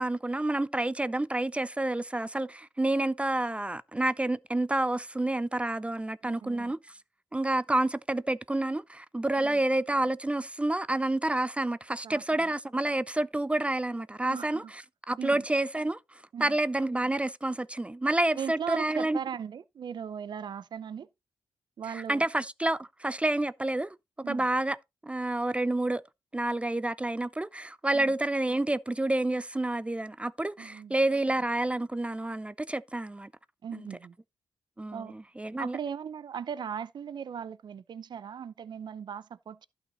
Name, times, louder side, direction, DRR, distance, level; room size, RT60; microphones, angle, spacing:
voice 1, 0.0-6.8 7.3-14.8 15.1-16.0 16.4-19.2 21.9-24.0 24.3-24.8 25.0-26.0 26.3-33.3 33.7-33.9 34.8-35.8, right 1 dB, 15° right, 0.4 m, -29 dB
voice 2, 6.2-6.7 9.4-9.6 12.0-12.5 14.2-14.7 15.2-15.4 16.3-16.6 18.3-21.1 21.8-22.3 24.2-24.5 27.9-28.1 30.6-30.9 33.6-34.1 34.9-35.1 35.6-39.7, right 8 dB, 60° right, 0.6 m, -38 dB
11.5 x 5.6 x 4.0 m
cardioid pair, 80°, 8 cm